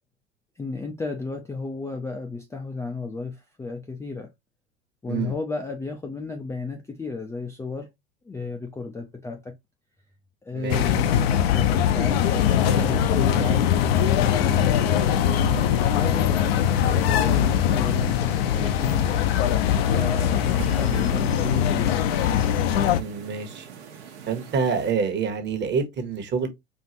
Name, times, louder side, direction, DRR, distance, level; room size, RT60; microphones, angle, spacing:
voice 1, 0.6-4.3 5.0-7.9 8.3-9.5 10.5-15.6 15.9-19.1 19.8-22.2, left 3 dB, 10° left, 0.4 m, -33 dB
voice 2, 10.5-11.0 12.7-13.0 15.4-15.7 23.0-23.7 24.3-26.5, right 5 dB, 30° right, 1.2 m, -28 dB
sound 1, 10.7-23.0, left 9 dB, 60° left, 0.6 m, -21 dB
sound 2, 15.1-24.9, right 7 dB, 70° right, 1.1 m, -43 dB
4.6 x 2.4 x 2.8 m
figure-of-eight pair, 80°, 34 cm